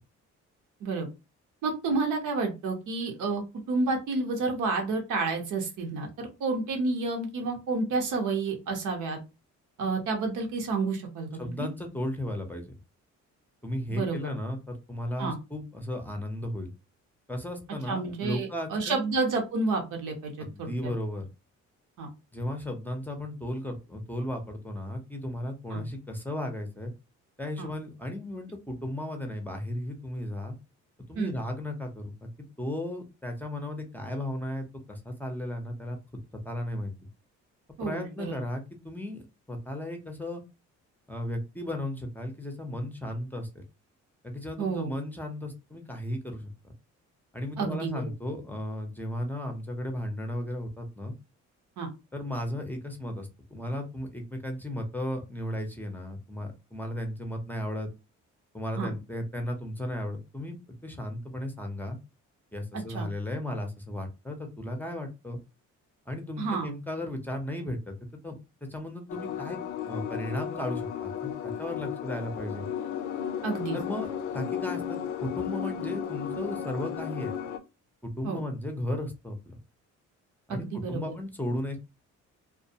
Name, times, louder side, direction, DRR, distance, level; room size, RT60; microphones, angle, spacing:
voice 1, 1.6-9.2 9.8-11.3 11.6-11.7 13.9-14.2 15.2-15.4 17.9-20.9 22.0-22.1 25.7-25.8 27.6-27.7 31.1-31.3 37.8-38.3 44.6-44.9 47.6-48.0 51.8-51.9 58.8-58.9 62.9-63.1 66.4-66.7 73.4-73.8 78.2-78.4 80.5-81.0, right 3 dB, 80° right, 2 dB, 0.9 m, -30 dB
voice 2, 11.4-12.7 13.6-16.7 17.3-19.0 20.4-21.3 22.3-26.9 27.4-30.5 31.1-32.3 32.6-36.9 37.8-40.4 41.1-43.6 44.2-46.5 47.3-51.1 52.1-57.9 58.5-62.0 62.5-65.4 66.1-67.9 68.2-68.4 68.7-69.6 69.9-72.7 73.7-77.3 78.0-79.6 80.5-81.8, left 1 dB, 5° left, 3 dB, 0.6 m, -35 dB
sound 1, 69.1-77.6, left 8 dB, 80° left, 0.5 m, -34 dB
2.3 x 2.2 x 2.7 m, 0.27 s
cardioid pair, 90°, 30 cm